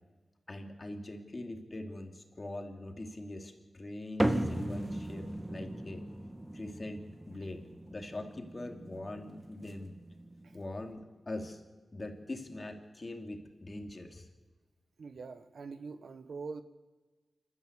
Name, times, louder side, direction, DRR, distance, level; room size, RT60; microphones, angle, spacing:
voice 1, 0.5-6.1 6.5-9.9 10.5-11.6 11.9-14.3, left 1 dB, 35° left, 4 dB, 2.8 m, -42 dB
sound 1, 4.2-10.9, right 1 dB, 20° right, 2.1 m, -37 dB
voice 2, 15.0-16.6, right 4 dB, 75° right, 10 dB, 1.4 m, -43 dB
27.5 x 13.0 x 8.3 m, 1.3 s
wide cardioid pair, 85°, 0 cm